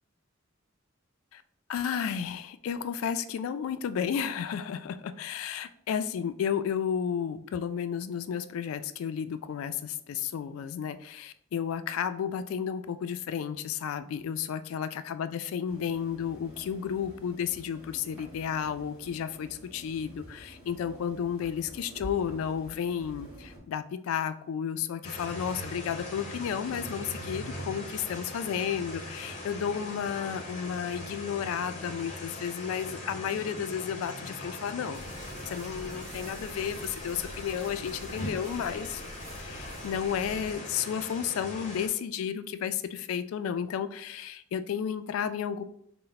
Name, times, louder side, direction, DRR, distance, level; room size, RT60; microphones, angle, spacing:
voice 1, 1.7-35.1 35.5-39.0 39.4-45.6, left 8 dB, 85° left, 15 dB, 0.3 m, -32 dB
sound 1, 15.6-23.6, equal, 10° right, 1.3 m, -49 dB
sound 2, 25.0-41.9, left 1 dB, 35° left, 0.7 m, -41 dB
sound 3, 34.9-40.6, right 2 dB, 65° right, 0.6 m, -47 dB
4.2 x 2.1 x 3.9 m, 0.69 s
head